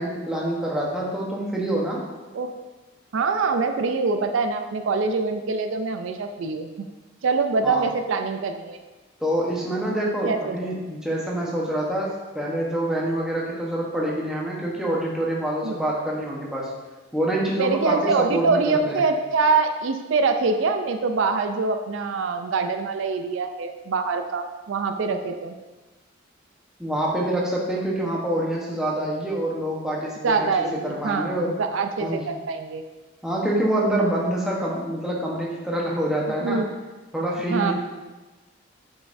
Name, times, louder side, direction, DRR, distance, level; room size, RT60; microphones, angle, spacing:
voice 1, 0.0-2.0 7.6-7.8 9.2-12.1 12.3-16.7 17.1-19.0 26.8-30.4 30.8-31.5 32.0-32.2 33.2-36.6 37.1-37.7, right 1 dB, 5° right, -5 dB, 1.0 m, -26 dB
voice 2, 3.1-6.9 7.2-8.8 10.2-10.7 15.6-15.7 17.6-25.6 30.2-32.8 36.4-36.7 37.5-37.7, right 4 dB, 70° right, 7 dB, 0.4 m, -24 dB
7.8 x 5.4 x 2.6 m, 1.2 s
head